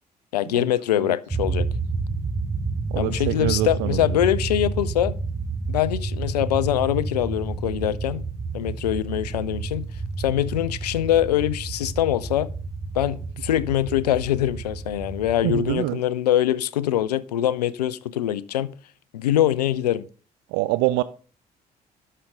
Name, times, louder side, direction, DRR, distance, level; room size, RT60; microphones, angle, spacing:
voice 1, 0.3-1.7 3.0-5.1 5.7-8.2 8.5-9.9 10.2-12.5 12.9-18.7 19.1-20.0, left 12 dB, 80° left, 0.4 m, -23 dB
sound 1, 1.3-15.8, right 4 dB, 15° right, 1.0 m, -30 dB
voice 2, 2.9-4.2 15.4-16.0 20.5-21.0, right 18 dB, 65° right, 0.5 m, -25 dB
11.0 x 6.6 x 3.7 m
figure-of-eight pair, 45°, 20 cm